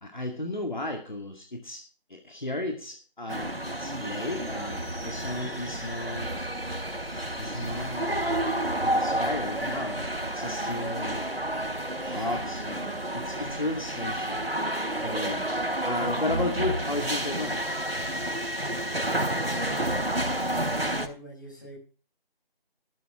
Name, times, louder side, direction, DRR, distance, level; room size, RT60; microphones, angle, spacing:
voice 1, 0.0-1.8 2.1-6.5 7.4-11.3 12.0-14.5 15.0-15.5 15.8-17.7, left 2 dB, 50° left, 3 dB, 2.2 m, -34 dB
sound 1, 3.3-21.1, right 1 dB, 85° right, 4.1 m, -30 dB
voice 2, 19.5-21.8, equal, 20° left, -2 dB, 6.6 m, -45 dB
13.5 x 13.0 x 3.7 m, 0.39 s
figure-of-eight pair, 175°, 30 cm